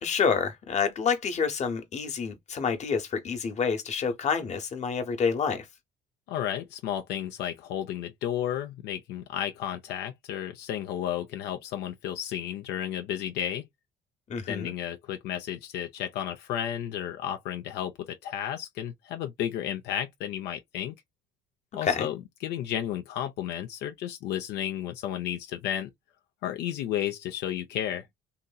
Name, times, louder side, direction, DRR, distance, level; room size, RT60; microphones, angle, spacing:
voice 1, 0.0-5.7 14.3-14.7 21.8-22.1, left 6 dB, 40° left, 1.0 m, -28 dB
voice 2, 6.3-13.6 14.5-17.9 18.2-20.9 21.7-25.9 26.4-28.1, left 10 dB, 80° left, 0.6 m, -32 dB
2.9 x 2.7 x 2.2 m
cardioid pair, 110°, 17 cm